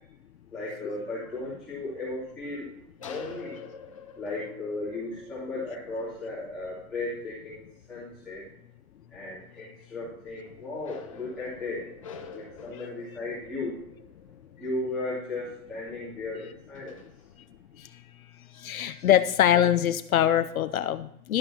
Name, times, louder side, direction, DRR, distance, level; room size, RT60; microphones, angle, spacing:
voice 1, 0.5-2.7 3.0-3.5 4.2-7.6 7.9-8.4 9.1-11.9 12.3-13.7 14.6-17.0, left 2 dB, ahead, -12 dB, 2.7 m, -35 dB
sound 1, 2.8-7.7 8.0-8.1 8.3-8.5 9.5-9.7 10.4-15.6 16.2-16.3 16.7-17.5, left 5 dB, 25° left, 0.6 m, -47 dB
voice 2, 18.6-21.4, left 10 dB, 65° left, 11 dB, 0.7 m, -23 dB
12.5 x 11.0 x 2.8 m, 0.74 s
hypercardioid pair, 170°, 45 cm